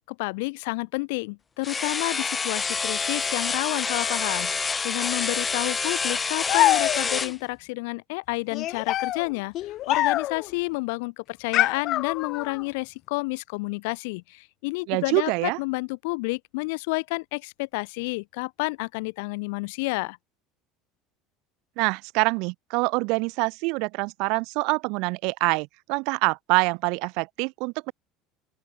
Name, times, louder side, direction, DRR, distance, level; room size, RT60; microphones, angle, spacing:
voice 1, 0.1-4.5 4.8-20.2, left 27 dB, 75° left, 3.5 m, -30 dB
sound 1, 1.6-7.3, left 5 dB, 15° left, 1.4 m, -27 dB
sound 2, 6.5-7.3 8.5-10.5 11.5-12.6, left 14 dB, 40° left, 0.7 m, -25 dB
voice 2, 14.9-15.6 21.8-27.9, right 29 dB, 55° right, 5.6 m, -25 dB
open air
cardioid pair, 170°, 0 cm